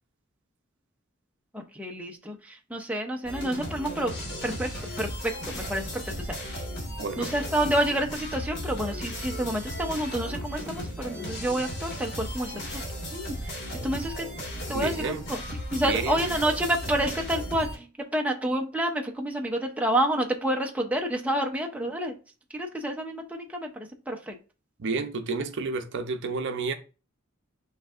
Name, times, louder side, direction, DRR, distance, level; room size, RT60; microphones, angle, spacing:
voice 1, 1.5-4.1 4.4-4.7 5.0-6.6 7.2-12.8 13.1-14.3 14.7-15.4 15.7-17.9 18.1-22.1 22.5-24.4, right 1 dB, 5° right, 0.6 m, -29 dB
sound 1, 3.2-17.8, equal, 55° left, 1.5 m, -36 dB
voice 2, 7.0-7.3 14.7-15.2 15.8-16.3 24.8-26.7, right 4 dB, 60° right, 0.6 m, -30 dB
7.7 x 2.7 x 2.4 m
head